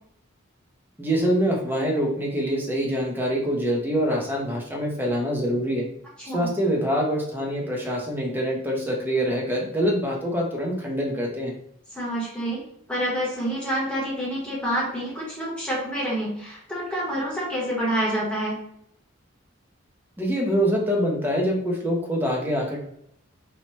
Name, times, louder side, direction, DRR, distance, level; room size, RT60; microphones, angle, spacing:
voice 1, 1.0-5.9 6.2-11.5 20.2-22.8, equal, 10° right, -1 dB, 0.5 m, -25 dB
voice 2, 6.2-6.5 11.9-12.6 12.9-18.6, right 1 dB, 5° left, -6 dB, 0.9 m, -27 dB
2.7 x 2.1 x 3.0 m, 0.74 s
head